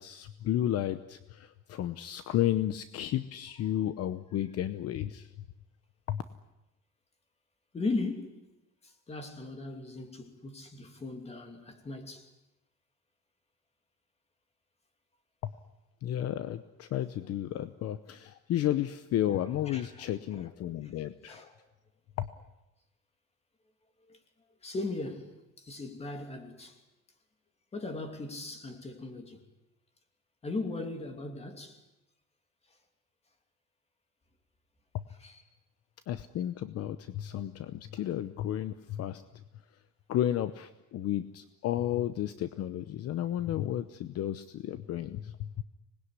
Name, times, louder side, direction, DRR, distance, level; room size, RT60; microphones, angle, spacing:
voice 1, 0.0-5.3 6.1-6.2 15.4-15.5 16.0-21.5 22.2-22.3 34.9-35.0 36.1-39.2 40.1-45.6, left 12 dB, 50° left, 0.9 m, -32 dB
voice 2, 7.7-8.4 8.8-12.3 19.6-20.1 20.4-20.5 21.3-21.5 24.1-24.2 24.6-26.8 27.7-29.4 30.4-31.8 35.2-35.4, left 3 dB, 20° left, 2.9 m, -38 dB
25.5 x 20.5 x 9.7 m
cardioid pair, 165°, 30 cm